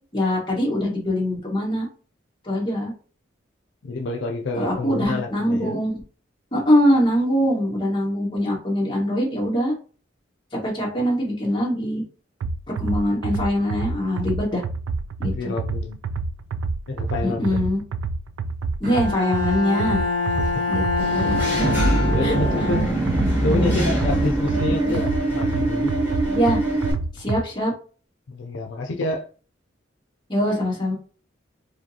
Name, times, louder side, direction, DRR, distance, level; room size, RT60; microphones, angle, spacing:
voice 1, 0.1-1.9 2.4-2.9 4.6-6.0 6.5-9.7 10.6-12.0 12.8-14.6 15.2-15.5 17.2-17.8 18.8-20.0 20.7-21.4 21.9-22.3 23.2-23.8 24.6-25.0 26.3-26.6 27.1-27.7 30.3-30.9, equal, 25° left, 1.6 m, -23 dB
voice 2, 3.8-5.7 15.2-16.0 16.9-17.7 20.4-20.6 22.1-22.9 23.4-25.9 28.3-29.3, left 2 dB, 70° left, 0.4 m, -28 dB
sound 1, 12.4-27.4, right 4 dB, 80° right, 0.3 m, -29 dB
Bowed string instrument, 18.8-23.4, left 4 dB, 45° right, 1.0 m, -26 dB
Engine / Mechanisms, 21.0-26.9, right 1 dB, 10° right, 1.3 m, -23 dB
4.9 x 2.2 x 2.8 m
head